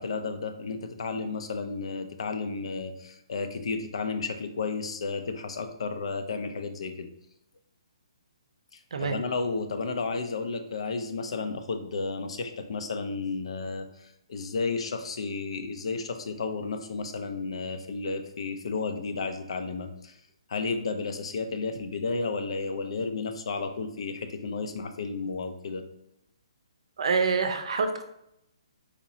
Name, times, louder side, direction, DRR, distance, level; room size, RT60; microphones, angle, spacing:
voice 1, 0.0-7.1 8.7-20.2 20.5-25.8, left 4 dB, 65° left, 8 dB, 0.5 m, -32 dB
voice 2, 27.0-28.0, right 5 dB, 70° right, 7 dB, 0.5 m, -26 dB
4.2 x 2.9 x 2.6 m, 0.79 s
hypercardioid pair, 155°, 3 cm